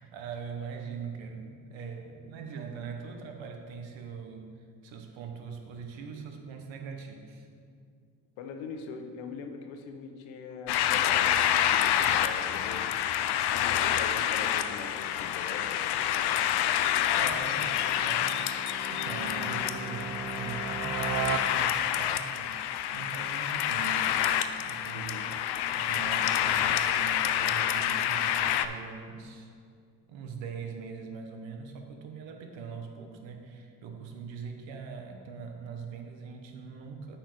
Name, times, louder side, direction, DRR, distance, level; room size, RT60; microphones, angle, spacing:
voice 1, 0.0-7.5 17.1-18.4 18.9-22.6 22.9-24.2 24.6-25.4 25.7-29.5 30.1-37.2, right 6 dB, 75° right, 4 dB, 1.1 m, -42 dB
voice 2, 8.4-12.9 13.7-15.7 24.9-25.3, left 5 dB, 75° left, 5 dB, 0.9 m, -42 dB
sound 1, 10.7-28.7, left 11 dB, 60° left, 0.5 m, -28 dB
sound 2, 15.7-22.1, right 6 dB, 40° right, 0.5 m, -38 dB
8.8 x 4.6 x 4.7 m, 2.3 s
supercardioid pair, 60°, 46 cm